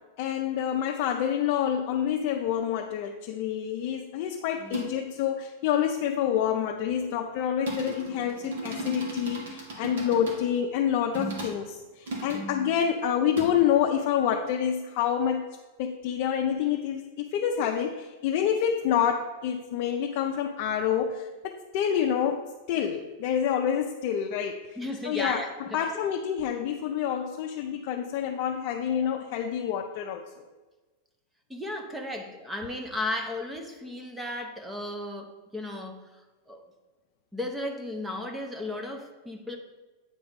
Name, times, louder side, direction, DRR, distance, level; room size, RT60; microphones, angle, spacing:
voice 1, 0.2-24.8 25.0-30.2, left 9 dB, 50° left, 1 dB, 0.5 m, -28 dB
sound 1, 4.6-5.2 7.7-10.5 11.1-11.5 12.1-12.8 13.4-13.5, right 1 dB, 85° right, 1.8 m, -36 dB
voice 2, 24.8-25.8 31.5-36.1 36.5-36.6 37.3-39.6, left 1 dB, 5° right, 4 dB, 0.7 m, -35 dB
8.6 x 3.0 x 5.2 m, 1.2 s
supercardioid pair, 155°, 0 cm